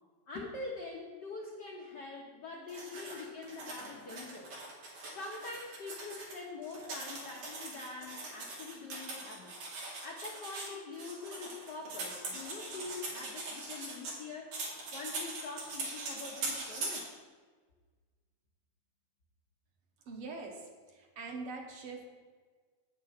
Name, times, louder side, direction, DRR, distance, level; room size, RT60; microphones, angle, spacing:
voice 1, 0.3-4.6 5.1-9.5 10.0-14.5 14.9-17.2, left 3 dB, 75° left, -2 dB, 0.9 m, -44 dB
sound 1, 2.7-6.3 6.6-14.2 14.5-17.0, right 3 dB, 90° right, 3.4 m, -41 dB
voice 2, 20.0-22.1, right 3 dB, 60° right, 2 dB, 1.7 m, -43 dB
8.5 x 6.5 x 5.8 m, 1.5 s
omnidirectional pair, 3.4 m